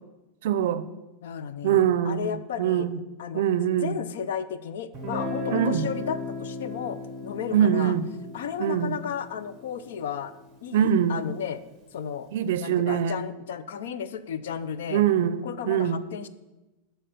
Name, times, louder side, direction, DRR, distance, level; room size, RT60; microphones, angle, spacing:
voice 1, 0.4-0.9 1.6-3.0 3.3-4.0 5.5-5.9 7.5-8.1 8.6-9.0 10.7-11.2 12.3-13.2 14.9-16.0, right 9 dB, 65° right, 14 dB, 0.5 m, -23 dB
voice 2, 1.2-2.9 3.2-3.4 3.8-7.9 8.3-10.3 10.6-11.6 11.9-12.3 12.6-15.0 15.4-16.3, left 7 dB, 80° left, 13 dB, 0.5 m, -33 dB
Guitar, 4.9-10.7, left 2 dB, 20° right, 1.0 m, -36 dB
11.5 x 4.5 x 5.1 m, 1.1 s
supercardioid pair, 175°, 0 cm